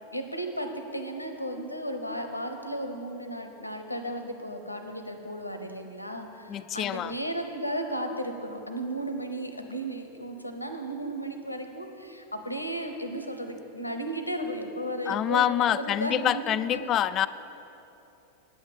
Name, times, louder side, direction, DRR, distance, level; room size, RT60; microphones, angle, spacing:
voice 1, 0.1-17.0, right 1 dB, 85° left, 6 dB, 0.8 m, -34 dB
voice 2, 6.5-7.1 15.1-17.3, left 11 dB, 30° left, 13 dB, 0.3 m, -26 dB
9.3 x 8.0 x 8.5 m, 3.0 s
figure-of-eight pair, 90°, 0 cm